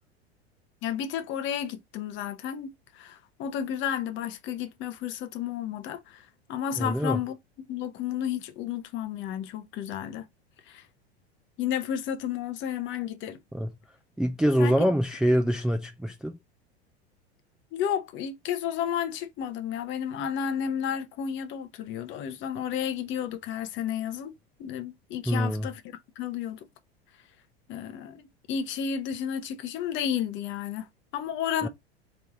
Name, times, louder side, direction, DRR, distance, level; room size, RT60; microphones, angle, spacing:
voice 1, 0.8-7.4 7.7-10.3 10.7-10.9 11.6-13.4 14.6-14.9 17.7-25.8 26.2-26.6 27.7-30.9 31.1-31.7, left 9 dB, 35° left, 0.7 m, -32 dB
voice 2, 6.8-7.2 13.5-13.7 14.2-16.4 25.3-25.7 31.6-31.7, equal, ahead, 0.4 m, -25 dB
3.4 x 3.1 x 4.0 m
figure-of-eight pair, 85°, 32 cm